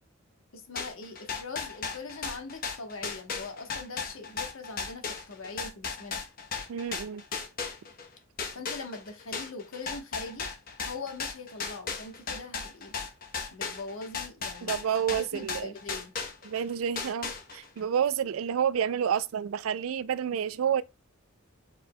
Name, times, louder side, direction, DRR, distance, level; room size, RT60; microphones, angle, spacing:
voice 1, 0.5-6.2 8.5-10.5 10.9-12.9 13.5-14.7 15.1-16.1, left 3 dB, 70° left, 1.1 m, -42 dB
sound 1, 0.8-8.1 8.4-16.6 17.0-17.8, left 5 dB, 40° left, 0.8 m, -36 dB
voice 2, 6.7-7.2 14.6-15.7 16.4-20.8, right 8 dB, 75° right, 0.3 m, -29 dB
5.0 x 4.4 x 2.2 m
head